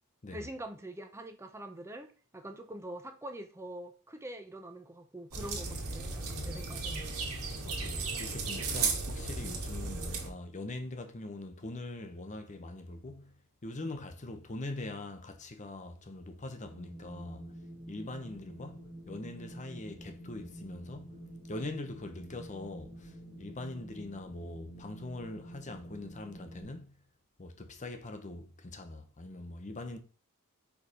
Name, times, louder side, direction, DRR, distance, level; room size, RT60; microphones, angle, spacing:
voice 1, 0.3-7.2, right 1 dB, 10° right, 0.5 m, -44 dB
sound 1, 5.3-10.3, right 4 dB, 80° right, 1.5 m, -35 dB
voice 2, 7.6-17.5 17.9-21.2 21.5-26.9 27.4-30.0, left 2 dB, 35° left, 0.8 m, -42 dB
Wind, 16.6-26.6, right 1 dB, 35° right, 1.4 m, -48 dB
4.7 x 4.2 x 4.9 m
head